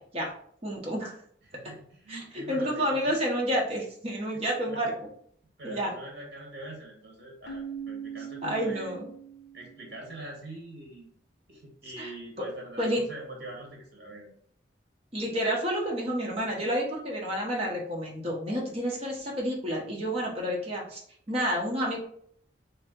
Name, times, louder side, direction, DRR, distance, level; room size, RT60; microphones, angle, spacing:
voice 1, 0.6-1.2 1.6-1.7 2.1-5.1 5.6-5.9 8.4-9.1 12.0-12.1 12.8-13.0 15.1-21.0 21.3-22.0, equal, 35° right, -2 dB, 1.0 m, -30 dB
voice 2, 1.4-3.1 4.3-4.9 5.6-8.9 9.5-11.1 11.5-14.3, right 1 dB, 60° right, -1 dB, 1.4 m, -43 dB
Keyboard (musical), 7.5-10.1, right 7 dB, 75° left, 0.4 m, -41 dB
3.1 x 2.7 x 3.7 m, 0.62 s
head